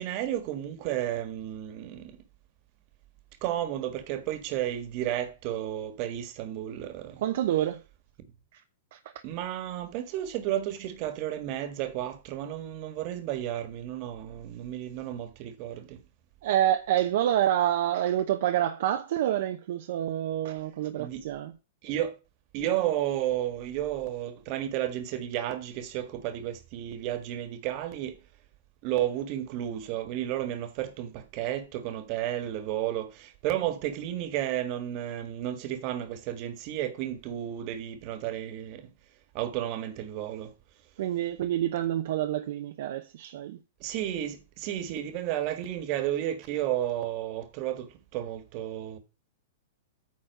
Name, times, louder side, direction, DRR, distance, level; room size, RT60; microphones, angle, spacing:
voice 1, 0.0-2.1 3.4-7.2 9.2-16.0 21.0-21.2 21.8-22.2 22.5-28.1 28.8-33.1 33.4-38.8 39.3-40.5 43.8-47.9 48.1-49.0, right 12 dB, 35° right, 1.6 m, -32 dB
voice 2, 7.2-7.8 8.9-9.0 16.4-21.5 41.0-43.6, right 12 dB, 55° right, 0.8 m, -27 dB
9.4 x 4.2 x 6.5 m
supercardioid pair, 160°, 0 cm